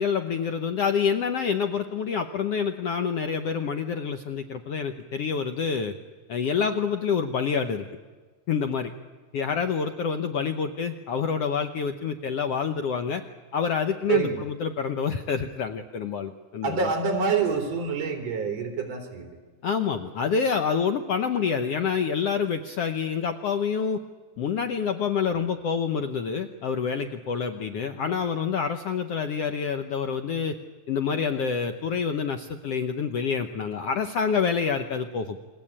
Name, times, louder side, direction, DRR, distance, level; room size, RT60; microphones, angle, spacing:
voice 1, 0.0-5.9 6.3-7.9 8.5-8.9 9.3-13.2 13.5-16.8 19.6-24.0 24.4-30.6 30.9-35.4, left 6 dB, 65° left, 7 dB, 1.7 m, -27 dB
voice 2, 14.1-14.4 16.6-19.3, right 5 dB, 55° right, 3 dB, 4.7 m, -26 dB
28.5 x 22.0 x 8.8 m, 1.4 s
omnidirectional pair, 3.7 m